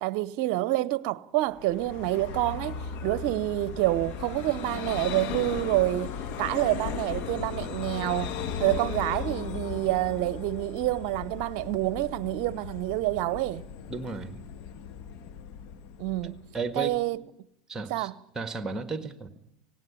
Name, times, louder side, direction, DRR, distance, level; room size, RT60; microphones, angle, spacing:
voice 1, 0.0-8.3 8.6-13.6 16.0-16.4 16.7-17.2 17.9-18.1, right 17 dB, 60° right, 0.7 m, -28 dB
Vehicle, 1.6-17.0, left 7 dB, 55° left, 1.4 m, -37 dB
voice 2, 13.9-14.4 16.5-17.0 17.7-18.1 18.4-19.3, right 4 dB, 15° right, 1.7 m, -33 dB
18.5 x 17.0 x 8.5 m
hypercardioid pair, 90°, 3 cm